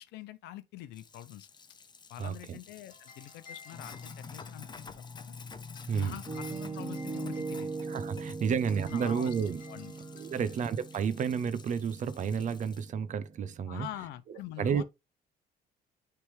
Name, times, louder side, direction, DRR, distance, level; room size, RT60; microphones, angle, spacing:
voice 1, 0.0-1.5 2.1-5.3 5.9-7.7 8.4-9.3 9.7-9.9 10.3-10.5 13.7-14.8, left 14 dB, 85° left, 0.7 m, -45 dB
Sink (filling or washing), 0.9-12.9, left 5 dB, 25° left, 0.8 m, -50 dB
voice 2, 2.2-2.6 5.9-6.2 7.9-9.6 10.2-13.9 14.6-14.8, right 7 dB, 45° right, 0.7 m, -31 dB
sound 1, 2.6-13.0, left 5 dB, 55° left, 2.0 m, -57 dB
Piano, 6.3-14.1, right 3 dB, 20° right, 1.0 m, -41 dB
9.3 x 3.4 x 3.2 m
cardioid pair, 110°, 17 cm